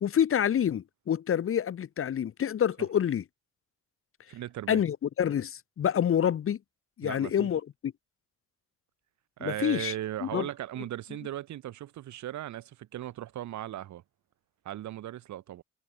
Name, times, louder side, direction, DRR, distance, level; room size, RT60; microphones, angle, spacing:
voice 1, 0.0-3.2 4.7-6.6 7.0-7.9 9.4-9.9 10.2-10.5, left 9 dB, 45° left, 0.9 m, -27 dB
voice 2, 4.3-4.8 7.0-7.5 9.4-14.0 14.6-15.6, right 13 dB, 70° right, 1.1 m, -37 dB
cardioid pair, 90°, 30 cm